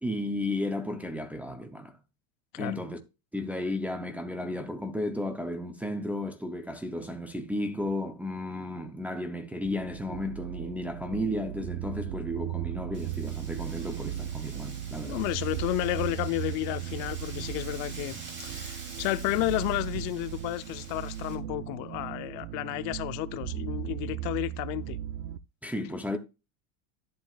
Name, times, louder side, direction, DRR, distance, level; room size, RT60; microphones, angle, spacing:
voice 1, 0.0-2.0 2.6-3.0 3.3-15.2 25.6-26.2, left 1 dB, 5° right, 0.5 m, -33 dB
sound 1, 9.6-25.4, right 12 dB, 55° right, 0.7 m, -37 dB
Wind, 12.9-21.3, right 3 dB, 25° right, 2.9 m, -47 dB
voice 2, 15.0-25.0, left 19 dB, 55° left, 0.6 m, -32 dB
11.5 x 7.6 x 2.4 m
supercardioid pair, 155°, 45 cm